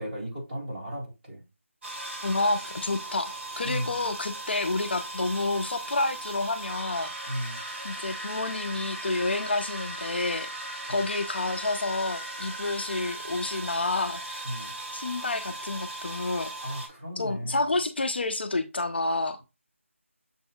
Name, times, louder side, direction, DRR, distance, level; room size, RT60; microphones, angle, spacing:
voice 1, 0.0-1.4 3.6-4.0 7.3-7.6 10.9-11.0 14.4-14.7 16.6-17.6, equal, 30° right, 2.2 m, -35 dB
sound 1, 1.8-16.9, right 1 dB, 55° right, 1.8 m, -38 dB
voice 2, 2.2-7.1 7.8-10.5 10.9-14.4 14.9-16.5 17.2-19.4, left 2 dB, 50° left, 0.5 m, -29 dB
7.0 x 2.7 x 2.3 m
figure-of-eight pair, 170°, 8 cm